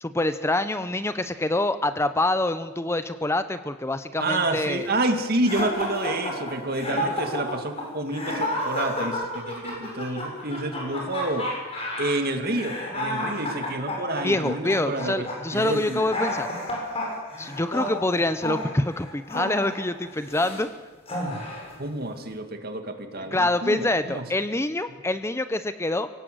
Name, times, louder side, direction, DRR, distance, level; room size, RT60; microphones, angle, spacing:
voice 1, 0.0-4.9 14.2-16.5 17.4-20.7 23.3-26.1, left 2 dB, 15° left, 11 dB, 0.7 m, -26 dB
voice 2, 4.2-11.5 12.0-15.2 15.5-16.1 21.8-24.3 24.9-25.0, right 1 dB, 50° right, 6 dB, 2.4 m, -29 dB
sound 1, 5.4-20.6 21.1-21.7, left 1 dB, 30° left, 7.0 m, -31 dB
24.0 x 18.0 x 7.9 m, 1.2 s
head